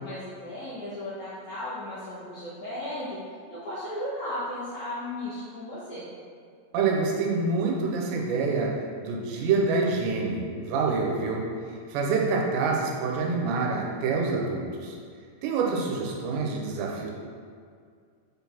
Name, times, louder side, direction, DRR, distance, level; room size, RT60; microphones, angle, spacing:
voice 1, 0.0-6.1, left 1 dB, 75° left, -9 dB, 1.7 m, -35 dB
voice 2, 6.7-8.7 9.0-11.5 11.9-15.0 15.4-17.1, right 4 dB, 85° right, -1 dB, 3.0 m, -26 dB
7.6 x 4.0 x 4.2 m, 2.1 s
omnidirectional pair, 5.0 m